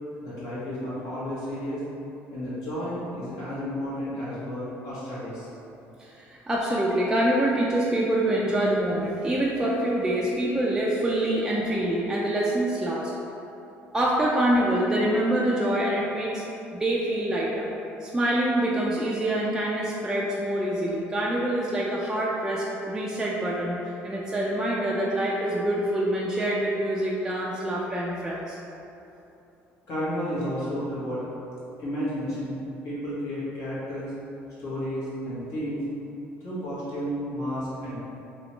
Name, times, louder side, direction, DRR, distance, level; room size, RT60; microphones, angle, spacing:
voice 1, 0.2-1.8 2.3-5.5 29.9-31.3 31.8-32.6 32.8-34.1 34.6-35.8 36.4-37.9, equal, 65° left, -9 dB, 1.4 m, -32 dB
voice 2, 6.1-13.1 13.9-16.4 16.7-17.7 18.0-23.8 24.0-28.6, right 1 dB, 10° right, -5 dB, 0.4 m, -25 dB
3.0 x 2.9 x 3.1 m, 2.9 s
cardioid pair, 110°, 5 cm